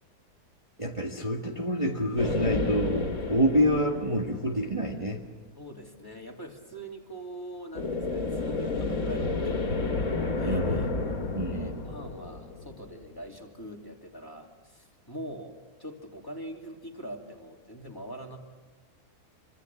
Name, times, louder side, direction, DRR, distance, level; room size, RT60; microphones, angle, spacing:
voice 1, 0.8-5.2 10.4-10.8 11.3-11.7, equal, 20° right, 0 dB, 1.7 m, -27 dB
sound 1, 2.2-5.0 7.7-13.2, left 3 dB, 65° left, 2.4 m, -31 dB
voice 2, 5.6-10.0 10.4-11.0 11.5-18.4, right 1 dB, 15° left, 1 dB, 2.9 m, -43 dB
26.0 x 25.5 x 7.3 m, 1.3 s
omnidirectional pair, 1.6 m